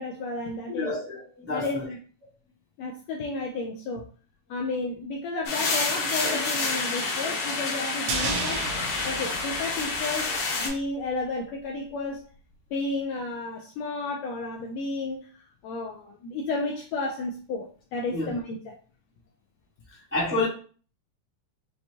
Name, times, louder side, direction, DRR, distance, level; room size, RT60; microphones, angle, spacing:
voice 1, 0.0-0.9 1.5-2.0 2.8-4.0 4.5-8.6 9.0-12.2 12.7-18.8, left 3 dB, 80° left, 1.5 m, -32 dB
voice 2, 0.7-1.7 18.1-18.3 20.1-20.4, left 2 dB, 10° right, 0.4 m, -28 dB
sound 1, 5.5-10.7, left 3 dB, 65° left, 2.1 m, -28 dB
sound 2, 8.1-10.5 10.7-10.8, right 4 dB, 75° right, 1.8 m, -33 dB
5.9 x 2.2 x 2.7 m
omnidirectional pair, 3.4 m